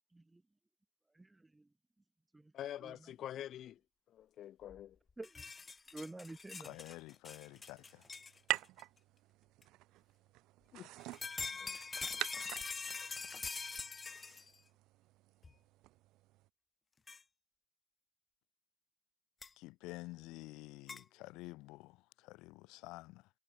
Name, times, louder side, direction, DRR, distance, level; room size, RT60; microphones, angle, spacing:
voice 1, 1.1-1.6 2.3-2.5 2.8-3.0 5.2-5.4 5.9-6.8, right 2 dB, 10° right, 0.8 m, -49 dB
voice 2, 2.5-3.8 4.1-5.0 10.7-10.9 11.5-11.8 14.3-14.4, left 11 dB, 45° left, 3.4 m, -46 dB
sound 1, 4.7-4.8 5.1-8.8 9.6-9.7 11.0-14.6 15.4-15.5 17.1-17.2 19.4-19.5 20.9-21.0, left 4 dB, 20° left, 1.7 m, -44 dB
voice 3, 6.6-8.0 19.6-23.3, left 21 dB, 70° left, 5.3 m, -50 dB
sound 2, 7.5-16.5, right 18 dB, 65° right, 2.9 m, -46 dB
cardioid pair, 125°, 0 cm